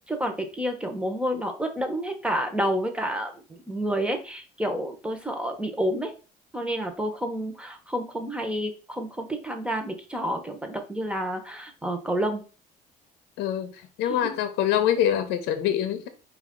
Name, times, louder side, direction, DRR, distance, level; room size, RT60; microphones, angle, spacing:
voice 1, 0.1-6.1 6.5-12.4 14.0-14.3, equal, 5° right, 0.8 m, -29 dB
voice 2, 13.4-13.7 14.0-16.1, left 10 dB, 90° left, 0.6 m, -24 dB
5.0 x 2.5 x 3.6 m
cardioid pair, 110°, 17 cm